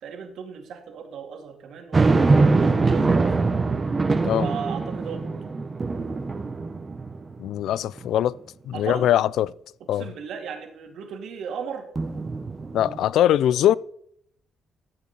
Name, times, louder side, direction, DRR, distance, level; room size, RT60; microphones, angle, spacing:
voice 1, 0.0-3.3 4.4-5.4 8.7-9.1 9.9-11.9, right 6 dB, 75° right, 2.4 m, -36 dB
sound 1, 1.9-7.5 8.0-8.1 11.9-13.0, right 3 dB, 30° right, 1.1 m, -23 dB
voice 2, 7.4-8.4 8.7-9.5 9.9-10.0 12.7-13.7, left 11 dB, 80° left, 0.3 m, -21 dB
14.5 x 7.2 x 4.3 m
cardioid pair, 90°, 0 cm